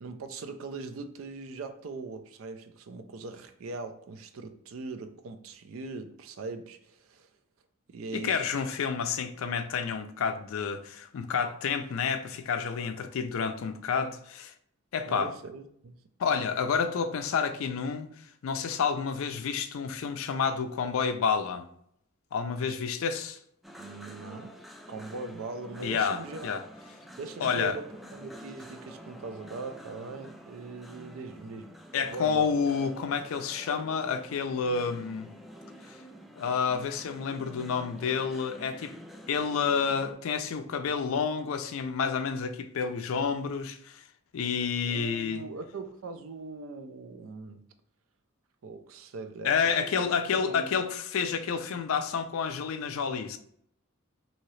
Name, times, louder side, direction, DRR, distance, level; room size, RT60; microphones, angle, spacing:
voice 1, 0.0-7.3 7.9-8.4 15.1-16.0 23.8-24.6 24.9-26.5 27.2-31.8 32.0-32.6 44.9-47.6 48.6-50.7, right 3 dB, 70° right, 0.4 m, -41 dB
voice 2, 8.1-14.5 14.9-15.3 16.2-18.1 18.4-21.7 22.3-23.4 25.8-26.6 27.4-27.8 31.9-35.3 36.4-38.9 39.3-44.0 44.3-45.4 49.4-53.4, left 6 dB, 70° left, 0.4 m, -29 dB
sound 1, 23.6-40.1, equal, ahead, 0.3 m, -48 dB
2.8 x 2.8 x 3.1 m
head